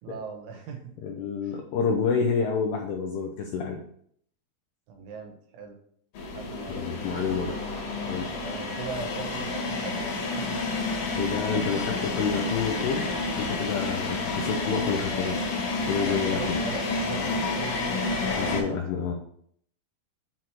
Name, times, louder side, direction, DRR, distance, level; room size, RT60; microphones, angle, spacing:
voice 1, 0.0-0.8 1.4-1.6 4.9-5.8 6.3-7.1 7.5-7.6 8.4-10.0 10.3-10.6 16.0-18.8, right 5 dB, 80° right, 4 dB, 3.3 m, -40 dB
voice 2, 1.0-3.8 6.7-7.6 8.0-8.3 11.2-13.1 13.4-15.5 15.8-16.6 18.4-19.1, left 6 dB, 85° left, 2 dB, 2.3 m, -28 dB
sound 1, 6.1-18.6, left 3 dB, 55° left, 2.7 m, -30 dB
sound 2, 7.0-13.5, equal, 10° right, 1.3 m, -44 dB
7.5 x 3.0 x 5.7 m, 0.65 s
omnidirectional pair, 5.4 m